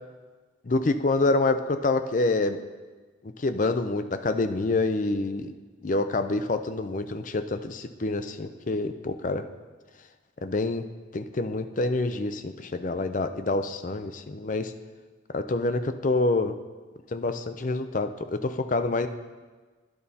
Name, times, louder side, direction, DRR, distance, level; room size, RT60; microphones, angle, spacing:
voice 1, 0.6-2.6 3.2-5.5 5.8-9.5 10.4-10.8 11.1-14.7 15.3-16.6 17.1-19.1, left 2 dB, 40° left, 9 dB, 0.5 m, -27 dB
12.5 x 11.0 x 2.8 m, 1.4 s
head